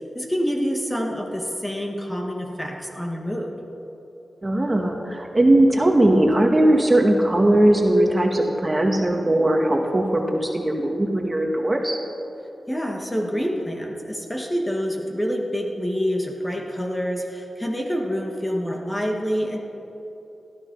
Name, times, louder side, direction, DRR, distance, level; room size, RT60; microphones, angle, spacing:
voice 1, 0.1-3.5 12.7-19.6, equal, 15° left, 1 dB, 2.3 m, -27 dB
voice 2, 4.4-12.0, right 1 dB, 25° right, 2 dB, 2.1 m, -19 dB
17.0 x 14.0 x 5.7 m, 2.9 s
cardioid pair, 55°, 0 cm